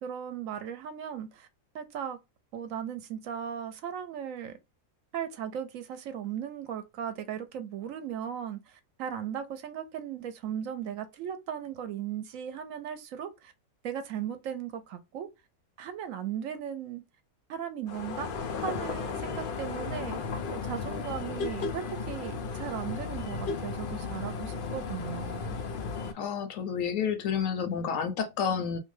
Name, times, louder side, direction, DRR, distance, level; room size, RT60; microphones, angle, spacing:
voice 1, 0.0-1.5 1.7-2.2 2.5-4.6 5.1-13.5 13.8-15.3 15.8-17.0 17.5-20.2 20.5-25.6, right 9 dB, 70° right, 0.9 m, -37 dB
sound 1, 17.9-26.1, left 5 dB, 90° left, 0.4 m, -35 dB
voice 2, 26.1-28.8, left 7 dB, 70° left, 0.9 m, -30 dB
2.6 x 2.2 x 3.1 m
omnidirectional pair, 1.5 m